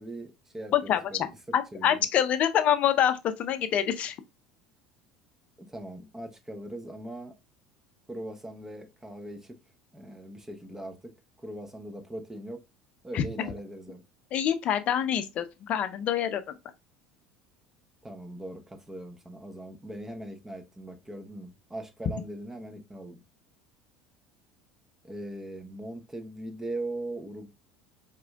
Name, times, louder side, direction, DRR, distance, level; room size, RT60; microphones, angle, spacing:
voice 1, 0.0-2.1 5.6-7.3 8.1-9.6 9.9-12.6 13.0-14.0 18.0-23.2 25.0-27.5, right 1 dB, 15° right, 1.0 m, -40 dB
voice 2, 0.7-1.3 1.5-4.2 13.1-13.2 14.3-16.5, left 10 dB, 45° left, 0.6 m, -26 dB
4.9 x 3.7 x 2.3 m
figure-of-eight pair, 70°, 3 cm